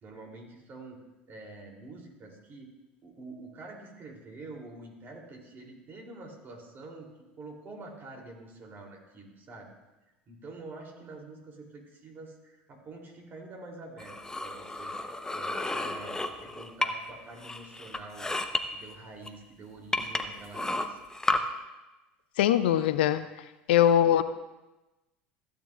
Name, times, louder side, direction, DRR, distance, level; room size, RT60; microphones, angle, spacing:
voice 1, 0.0-1.0 1.3-2.7 3.0-9.7 10.3-14.2 14.4-14.9 15.3-18.3 18.7-21.0, right 2 dB, 40° right, 1 dB, 3.1 m, -47 dB
sound 1, 14.0-17.1 17.4-18.6 19.2-19.3 19.9-21.4, left 2 dB, 10° left, 0.9 m, -32 dB
voice 2, 22.4-23.2 23.7-24.2, left 10 dB, 75° left, 13 dB, 0.5 m, -21 dB
15.0 x 9.2 x 2.4 m, 1.1 s
hypercardioid pair, 75°, 6 cm